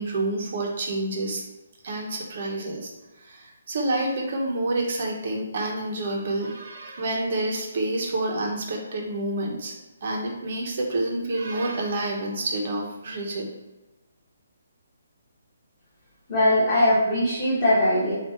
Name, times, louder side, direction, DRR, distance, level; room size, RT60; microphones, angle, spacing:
voice 1, 0.0-1.4 1.8-2.9 3.2-9.7 10.0-13.5, right 2 dB, 35° right, 0 dB, 1.1 m, -28 dB
voice 2, 16.3-18.1, left 1 dB, 15° left, -14 dB, 1.7 m, -20 dB
7.7 x 2.8 x 4.4 m, 1.0 s
hypercardioid pair, 180°, 0 cm